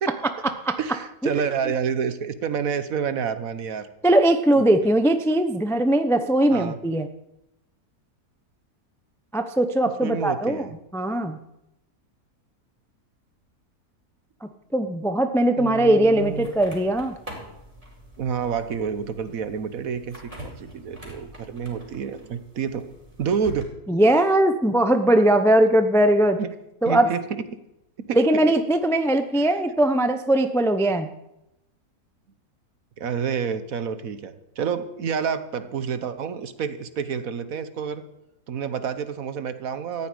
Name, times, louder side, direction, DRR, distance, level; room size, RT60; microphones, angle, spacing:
voice 1, 0.8-3.9 4.5-4.7 6.5-6.8 10.0-10.7 15.6-16.5 18.2-22.9 23.2-23.7 26.4-26.5 26.8-27.4 28.1-28.5 33.0-38.0 38.5-40.1, right 7 dB, 60° right, 11 dB, 1.4 m, -29 dB
voice 2, 4.0-7.1 9.3-10.7 10.9-11.4 14.7-17.1 23.9-26.4 26.8-27.1 28.2-31.1, right 1 dB, 5° left, 8 dB, 0.5 m, -20 dB
sound 1, 16.1-23.6, right 1 dB, 20° right, 4.8 m, -44 dB
14.5 x 7.1 x 9.7 m, 0.88 s
omnidirectional pair, 1.7 m